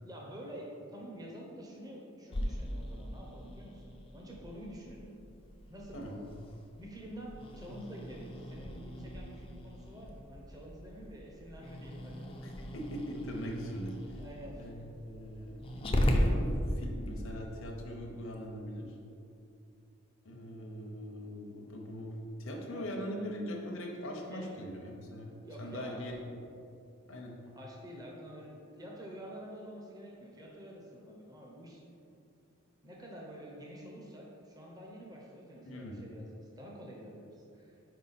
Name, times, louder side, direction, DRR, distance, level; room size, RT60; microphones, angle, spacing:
voice 1, 0.0-5.1 5.7-6.3 6.8-12.3 14.2-14.9 22.7-22.8 24.3-24.5 25.3-26.1 27.6-31.8 32.8-37.7, equal, 20° right, -2 dB, 0.7 m, -48 dB
Growling, 2.3-17.1, equal, 25° left, 0.4 m, -37 dB
voice 2, 12.4-14.2 14.6-18.9 20.2-22.1 22.4-25.3 25.6-26.1 27.1-27.3 35.6-36.0, equal, 75° left, -1 dB, 0.8 m, -41 dB
5.6 x 4.6 x 4.1 m, 2.6 s
head